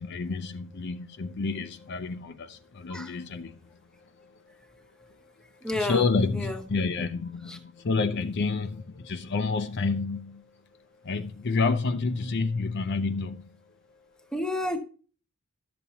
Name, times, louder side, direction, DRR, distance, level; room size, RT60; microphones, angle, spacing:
voice 1, 0.0-14.3, left 4 dB, 50° left, 0.5 m, -30 dB
voice 2, 5.6-6.0 6.4-6.6 14.3-14.8, left 1 dB, 5° left, 1.0 m, -29 dB
12.0 x 6.9 x 2.8 m
head